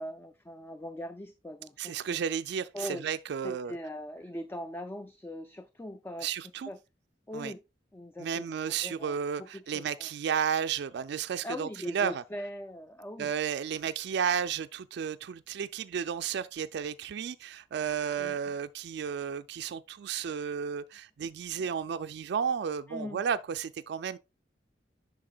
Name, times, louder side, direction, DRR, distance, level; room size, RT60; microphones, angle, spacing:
voice 1, 0.0-2.2 2.7-3.1 3.4-6.8 7.3-7.6 7.9-10.1 11.4-13.3 18.2-18.4 22.9-23.2, left 1 dB, 15° left, 0.3 m, -41 dB
voice 2, 1.8-3.7 6.2-6.7 7.3-7.5 8.2-12.2 13.2-24.2, right 7 dB, 65° right, 0.3 m, -33 dB
8.6 x 5.9 x 2.3 m
head